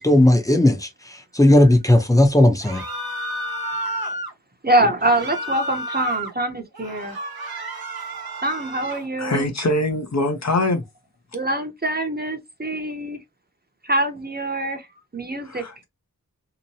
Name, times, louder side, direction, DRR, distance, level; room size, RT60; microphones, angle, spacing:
voice 1, 0.0-2.8, left 1 dB, 10° left, 0.7 m, -16 dB
sound 1, 2.6-4.3 5.0-6.3 6.7-9.1, right 1 dB, 80° right, 0.8 m, -31 dB
voice 2, 4.6-7.2 8.4-9.5 11.3-13.2 13.8-14.9 15.1-15.6, right 1 dB, 25° right, 0.8 m, -24 dB
voice 3, 9.2-10.8 15.4-15.8, left 2 dB, 50° left, 0.7 m, -23 dB
2.9 x 2.1 x 2.7 m
wide cardioid pair, 50°, 36 cm